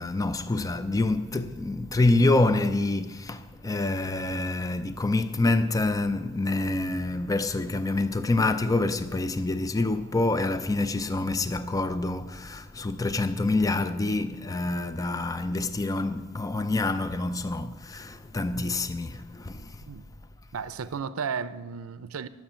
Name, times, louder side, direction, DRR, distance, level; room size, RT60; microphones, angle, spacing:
voice 1, 0.0-19.8, left 2 dB, 15° left, 0.4 m, -27 dB
voice 2, 20.5-22.3, right 6 dB, 75° right, 0.5 m, -33 dB
12.0 x 7.5 x 8.8 m
head